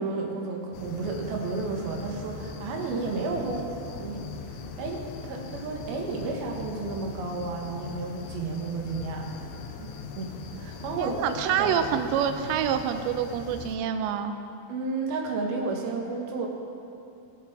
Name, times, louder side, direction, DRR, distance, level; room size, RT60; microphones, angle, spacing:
voice 1, 0.0-3.7 4.0-9.3 9.8-11.8 14.7-16.5, right 3 dB, 65° right, 0 dB, 3.0 m, -32 dB
sound 1, 0.7-13.8, left 6 dB, 90° left, 3.0 m, -40 dB
voice 2, 11.0-14.4, right 8 dB, 90° right, 8 dB, 2.9 m, -27 dB
21.0 x 7.2 x 4.1 m, 2.6 s
omnidirectional pair, 5.0 m